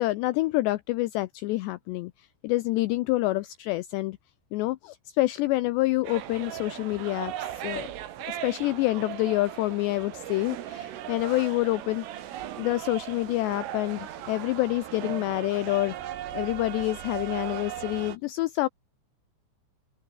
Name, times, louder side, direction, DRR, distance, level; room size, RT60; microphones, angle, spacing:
voice 1, 0.0-4.2 4.5-7.9 8.3-12.3 12.6-18.7, left 18 dB, 90° left, 2.5 m, -27 dB
sound 1, 6.0-18.2, right 12 dB, 80° right, 4.6 m, -37 dB
open air
omnidirectional pair, 5.8 m